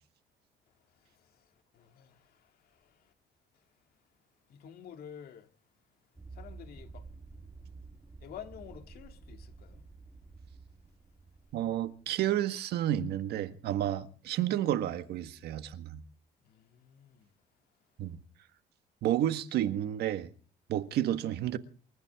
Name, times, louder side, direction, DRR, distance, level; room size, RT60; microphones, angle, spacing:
voice 1, 0.9-3.1 3.5-3.6 4.5-5.5 6.3-7.1 8.2-9.9 16.4-17.3, left 9 dB, 65° left, 2.3 m, -51 dB
sound 1, 6.1-12.3, right 3 dB, 15° right, 1.7 m, -51 dB
voice 2, 11.5-16.0 18.0-18.2 19.0-20.3 20.7-21.6, right 12 dB, 75° right, 1.6 m, -31 dB
28.0 x 13.5 x 3.7 m
cardioid pair, 110°, 17 cm